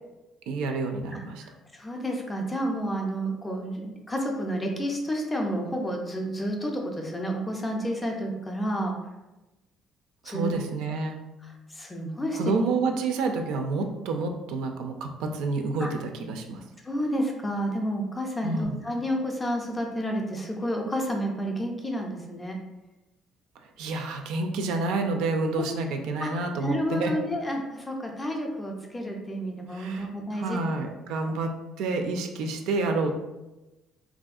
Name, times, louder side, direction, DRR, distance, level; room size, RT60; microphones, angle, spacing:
voice 1, 0.5-1.4 10.2-11.2 12.3-16.6 18.4-18.8 23.8-27.1 29.7-33.1, right 3 dB, 75° right, 4 dB, 0.4 m, -29 dB
voice 2, 1.1-9.0 10.2-10.6 11.7-12.4 15.8-15.9 16.8-22.6 25.6-25.7 26.2-26.3 26.6-30.6, equal, 10° left, 1 dB, 0.4 m, -30 dB
3.4 x 2.5 x 2.4 m, 1.0 s
cardioid pair, 175°, 0 cm